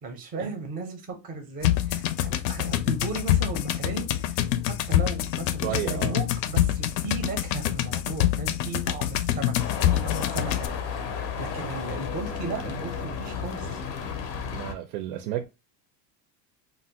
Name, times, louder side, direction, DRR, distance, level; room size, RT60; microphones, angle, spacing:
voice 1, 0.0-4.4 4.7-9.5 9.9-11.0 11.4-13.8, right 3 dB, 20° right, 0.5 m, -36 dB
sound 1, 1.6-10.7, left 12 dB, 90° left, 0.5 m, -26 dB
voice 2, 5.6-6.2 14.5-15.5, right 12 dB, 90° right, 0.5 m, -31 dB
sound 2, 9.6-14.7, left 6 dB, 35° left, 0.4 m, -33 dB
2.5 x 2.0 x 3.9 m
cardioid pair, 170°, 43 cm